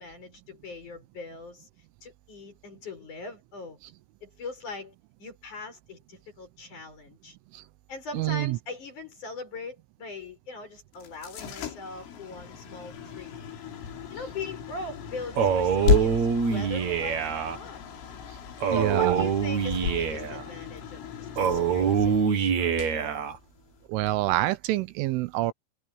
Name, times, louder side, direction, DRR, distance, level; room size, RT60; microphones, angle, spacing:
voice 1, 0.0-1.7 2.0-3.8 4.2-4.9 5.2-7.4 7.9-13.4 14.1-17.8 18.7-22.8, left 3 dB, 40° left, 8.4 m, -41 dB
voice 2, 8.1-8.6 18.7-19.3 23.9-25.5, right 16 dB, 80° right, 3.5 m, -26 dB
sound 1, 10.9-23.9, left 7 dB, 80° left, 5.6 m, -34 dB
Male speech man speaking, 15.4-17.6 18.6-20.4 21.4-23.4, right 7 dB, 50° right, 2.4 m, -25 dB
omnidirectional pair, 5.7 m